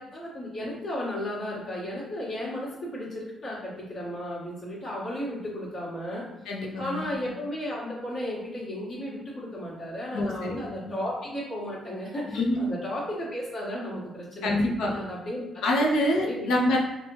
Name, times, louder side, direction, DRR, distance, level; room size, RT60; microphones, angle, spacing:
voice 1, 0.0-6.3 6.8-15.7 16.2-16.5, left 1 dB, 55° left, -9 dB, 1.3 m, -34 dB
voice 2, 6.5-7.2 10.1-10.9 12.3-12.6 14.4-14.9 15.6-16.8, left 1 dB, 85° left, -1 dB, 0.6 m, -26 dB
3.2 x 2.1 x 3.0 m, 0.99 s
cardioid pair, 90°, 0 cm